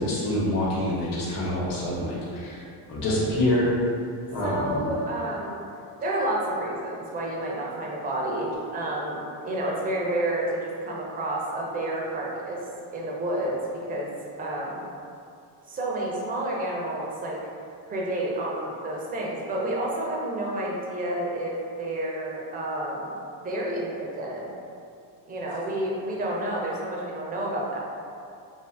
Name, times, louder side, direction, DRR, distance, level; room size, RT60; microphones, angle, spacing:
voice 1, 0.0-2.6 2.9-3.7 4.3-4.8, left 1 dB, 75° left, -6 dB, 1.2 m, -26 dB
voice 2, 4.4-5.6 6.0-9.2 9.4-12.6 12.9-13.6 13.9-14.1 14.4-14.8 15.7-17.4 17.9-23.1 23.4-24.5 25.3-27.8, right 1 dB, 20° right, -3 dB, 0.5 m, -30 dB
2.6 x 2.4 x 3.3 m, 2.5 s
cardioid pair, 120°, 44 cm